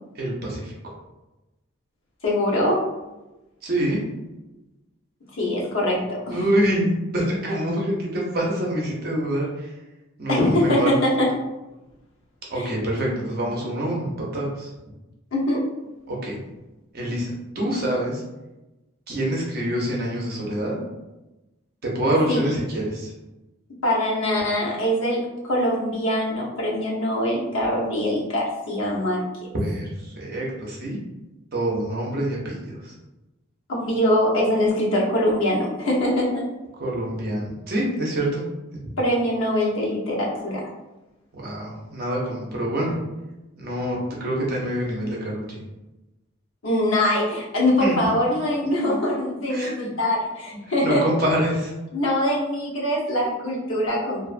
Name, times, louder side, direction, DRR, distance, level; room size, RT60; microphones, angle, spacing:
voice 1, 0.2-0.7 3.6-4.0 6.3-9.7 10.2-11.0 12.5-14.7 16.1-16.4 16.9-18.2 19.1-20.8 21.8-23.1 29.6-31.0 31.5-32.9 36.8-38.4 41.3-43.0 43.6-45.6 47.8-48.1 48.6-49.0 49.5-49.9 50.8-51.7, right 1 dB, 45° right, -3 dB, 0.7 m, -26 dB
voice 2, 2.2-2.8 5.3-6.4 10.3-11.3 12.6-12.7 15.3-15.6 22.3-22.5 23.8-29.2 33.7-36.4 39.0-40.7 46.6-51.0 51.9-54.2, left 1 dB, 75° left, -4 dB, 0.8 m, -23 dB
2.5 x 2.4 x 2.4 m, 1.0 s
head